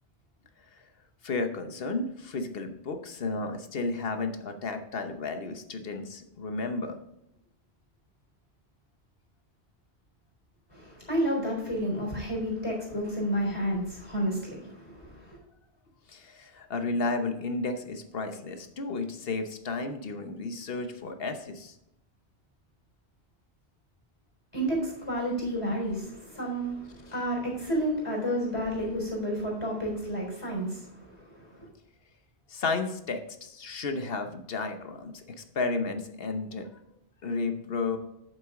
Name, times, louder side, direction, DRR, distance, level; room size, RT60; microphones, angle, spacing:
voice 1, 1.2-7.0 16.1-21.8 27.1-27.2 32.5-36.7 37.2-38.0, left 3 dB, 60° left, 7 dB, 1.2 m, -33 dB
voice 2, 10.7-15.4 24.5-31.7, equal, 30° left, -2 dB, 4.1 m, -31 dB
8.8 x 7.4 x 3.8 m, 0.83 s
omnidirectional pair, 1.1 m